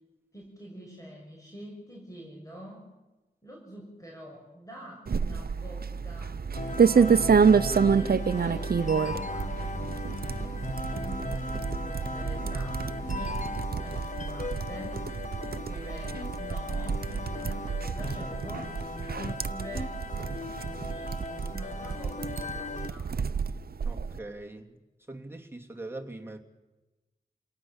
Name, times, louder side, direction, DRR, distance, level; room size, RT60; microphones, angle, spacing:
voice 1, 0.3-2.8 3.4-6.4 6.7-9.6 10.9-13.4 13.8-15.0 15.4-18.8 19.1-20.0 20.8-21.2 21.5-23.2, equal, 20° left, -2 dB, 6.2 m, -46 dB
sound 1, 5.1-24.2, right 6 dB, 75° right, 0.7 m, -28 dB
sound 2, 6.5-22.9, left 3 dB, 50° left, 1.2 m, -37 dB
voice 2, 10.3-10.6 23.8-24.7 25.1-26.4, right 2 dB, 15° right, 1 dB, 2.7 m, -42 dB
27.5 x 18.5 x 7.4 m, 1.1 s
wide cardioid pair, 70°, 16 cm